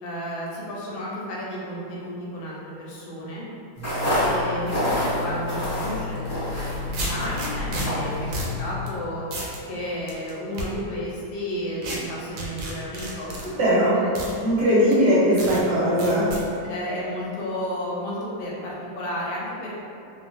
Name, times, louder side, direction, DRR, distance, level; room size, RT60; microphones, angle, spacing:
voice 1, 0.0-3.4 4.2-8.3 8.6-9.2 9.7-13.3 13.9-14.1 14.3-14.5 16.6-19.8, equal, 80° left, -5 dB, 1.3 m, -32 dB
sound 1, 3.8-8.8, left 1 dB, 35° left, 0.4 m, -27 dB
sound 2, 6.2-6.3 6.9-7.9 8.3-8.6 8.9-9.0 9.3-9.6 10.1-10.7 11.8-12.0 12.4-13.5 14.2-14.3 14.9-15.0 15.4-15.6 16.0-16.4, right 1 dB, 85° right, 1.4 m, -31 dB
voice 2, 13.6-14.0 14.4-16.3, equal, 70° right, -9 dB, 1.3 m, -19 dB
3.1 x 2.3 x 2.5 m, 2.6 s
omnidirectional pair, 2.1 m